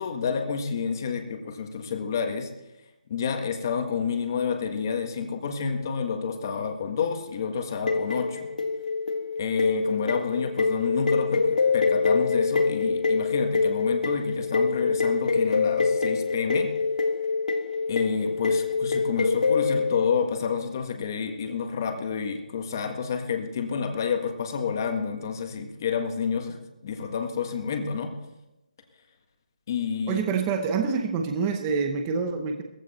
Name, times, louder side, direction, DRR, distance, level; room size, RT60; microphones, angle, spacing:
voice 1, 0.0-2.5 3.1-8.5 9.4-16.7 17.9-26.6 26.8-28.1 29.7-30.3, left 6 dB, 25° left, 5 dB, 1.6 m, -29 dB
sound 1, 7.9-20.2, left 4 dB, 65° left, 1.7 m, -25 dB
voice 2, 30.1-32.6, right 5 dB, 10° right, 5 dB, 0.8 m, -26 dB
18.5 x 15.0 x 4.3 m, 0.96 s
hypercardioid pair, 175°, 4 cm